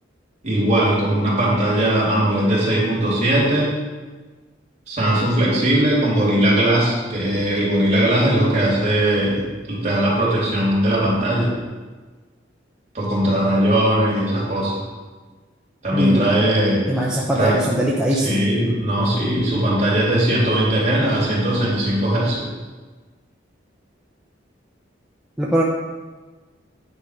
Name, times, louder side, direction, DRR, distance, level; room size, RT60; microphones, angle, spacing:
voice 1, 0.4-3.7 4.9-11.5 12.9-14.8 15.8-17.6 18.1-22.4, right 1 dB, 35° right, -7 dB, 3.0 m, -19 dB
voice 2, 15.9-16.4 16.9-18.4 25.4-25.6, right 1 dB, 5° right, -4 dB, 0.7 m, -21 dB
9.4 x 5.0 x 5.0 m, 1.3 s
head